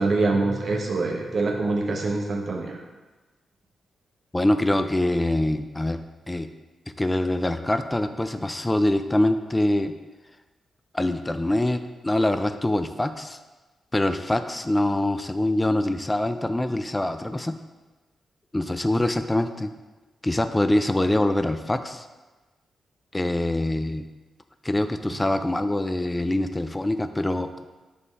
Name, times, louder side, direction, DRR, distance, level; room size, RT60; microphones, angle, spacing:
voice 1, 0.0-2.8, right 3 dB, 60° right, 1 dB, 0.9 m, -25 dB
voice 2, 4.3-6.0 6.3-6.5 7.0-9.9 10.9-13.4 13.9-17.6 18.5-19.7 20.2-22.1 23.1-24.1 24.6-27.7, left 1 dB, 15° left, 10 dB, 0.4 m, -24 dB
5.3 x 3.2 x 5.5 m, 1.2 s
cardioid pair, 60°, 0 cm